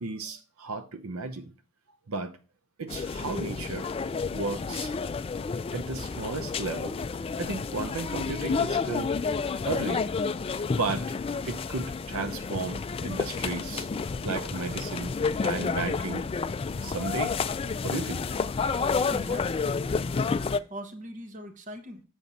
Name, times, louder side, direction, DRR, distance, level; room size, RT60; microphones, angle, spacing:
voice 1, 0.0-1.5 2.1-2.4 2.8-3.9 4.3-4.9 5.7-7.0 7.4-9.1 9.6-10.0 10.8-11.2 11.4-13.9 14.2-15.1 15.4-16.3 16.8-17.4 17.8-18.3, right 3 dB, 85° right, 0.8 m, -34 dB
sound 1, 2.9-20.6, left 5 dB, 25° left, 0.3 m, -30 dB
voice 2, 19.1-19.7 20.5-22.0, equal, 40° right, 1.1 m, -41 dB
7.2 x 6.1 x 4.0 m
head